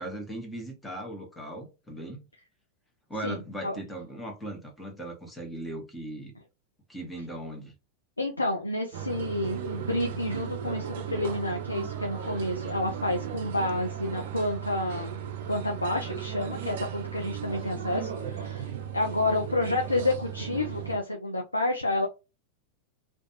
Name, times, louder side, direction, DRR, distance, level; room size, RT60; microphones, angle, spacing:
voice 1, 0.0-2.2 3.1-6.3 6.9-7.7, right 1 dB, 5° left, 0.9 m, -38 dB
voice 2, 3.2-3.8 8.2-15.2 15.5-22.1, left 2 dB, 85° left, 0.4 m, -30 dB
sound 1, 8.9-21.0, right 8 dB, 55° right, 0.4 m, -36 dB
2.5 x 2.2 x 2.8 m
figure-of-eight pair, 90°, 0 cm